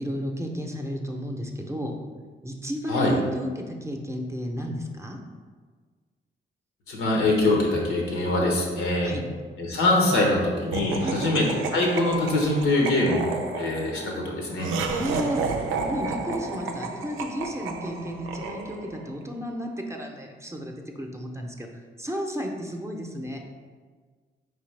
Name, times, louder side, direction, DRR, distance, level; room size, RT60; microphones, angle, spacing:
voice 1, 0.0-1.9 2.4-5.2 9.0-9.2 11.0-11.2 14.9-15.4 15.8-21.7 22.0-23.4, equal, 15° right, 2 dB, 0.6 m, -33 dB
voice 2, 6.9-9.1 9.6-14.7, left 2 dB, 90° left, -1 dB, 0.9 m, -23 dB
Laughter, 10.7-19.1, right 4 dB, 85° right, 0.4 m, -32 dB
4.6 x 3.3 x 3.3 m, 1.5 s
supercardioid pair, 55°, 20 cm